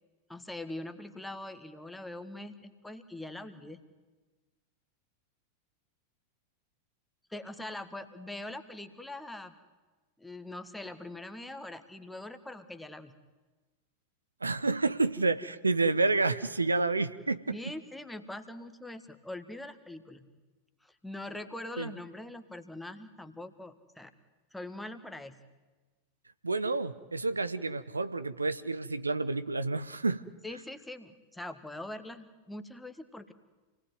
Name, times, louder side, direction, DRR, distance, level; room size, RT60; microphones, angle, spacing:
voice 1, 0.3-3.8 7.3-9.5 10.2-13.2 17.5-20.3 20.8-24.1 24.5-25.4 30.4-33.3, left 1 dB, 5° left, 8 dB, 1.6 m, -43 dB
voice 2, 14.4-17.6 21.8-21.9 26.4-30.2, right 3 dB, 80° right, 13 dB, 0.8 m, -29 dB
28.0 x 19.0 x 9.5 m, 1.2 s
figure-of-eight pair, 90°, 0 cm